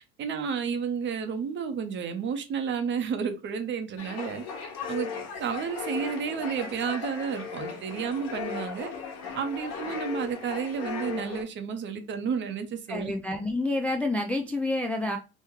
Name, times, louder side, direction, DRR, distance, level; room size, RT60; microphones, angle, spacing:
voice 1, 0.2-5.1 5.4-8.9 9.3-13.1, right 6 dB, 40° right, 0.7 m, -31 dB
sound 1, 4.0-11.4, left 5 dB, 60° left, 1.1 m, -37 dB
voice 2, 12.9-15.2, left 2 dB, 5° left, 0.3 m, -28 dB
3.1 x 2.1 x 3.5 m
supercardioid pair, 105°, 30 cm